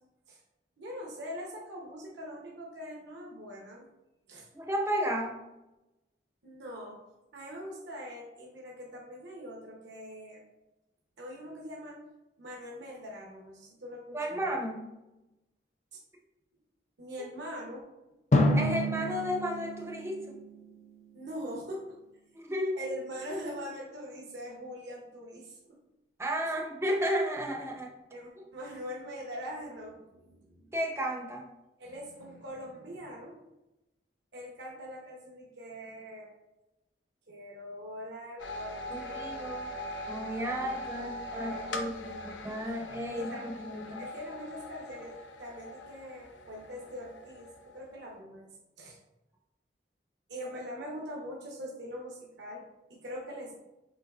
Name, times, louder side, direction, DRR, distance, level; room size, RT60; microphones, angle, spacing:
voice 1, 0.8-3.9 4.3-4.5 6.4-7.0 7.3-10.4 11.2-12.0 12.4-14.5 15.9-16.0 17.0-17.8 21.1-21.9 22.8-25.8 26.4-26.5 28.1-30.7 31.8-33.4 34.3-36.3 37.3-39.6 40.6-42.6 43.1-43.6 44.0-48.5 48.8-49.0 50.3-52.6 52.9-53.5, equal, 75° right, -3 dB, 0.8 m, -43 dB
voice 2, 4.5-5.4 14.1-14.8 17.2-17.3 18.5-20.3 22.3-22.8 26.2-27.9 30.7-31.4 38.9-39.8 40.1-44.0, equal, 15° right, 1 dB, 0.6 m, -33 dB
Drum, 18.3-21.2, left 1 dB, 40° left, 0.5 m, -29 dB
sound 1, 38.4-48.0, left 1 dB, 85° left, 0.6 m, -41 dB
5.5 x 3.8 x 2.4 m, 0.97 s
head